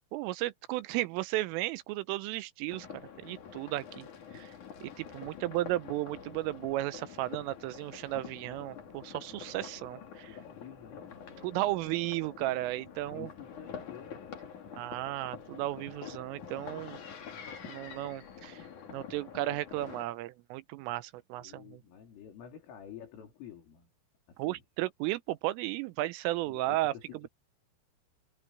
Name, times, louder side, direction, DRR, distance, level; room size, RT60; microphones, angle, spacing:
voice 1, 0.1-2.9 3.2-4.1 4.3-4.5 4.8-10.3 11.4-13.3 14.8-17.0 17.6-18.6 18.9-21.8 24.4-26.9, right 17 dB, 85° right, 3.4 m, -34 dB
sound 1, 2.7-20.0, left 7 dB, 45° left, 3.2 m, -47 dB
voice 2, 5.2-5.7 10.2-11.9 12.9-14.4 21.3-23.9 24.3-24.6 26.5-27.3, left 9 dB, 75° left, 6.6 m, -50 dB
omnidirectional pair, 5.9 m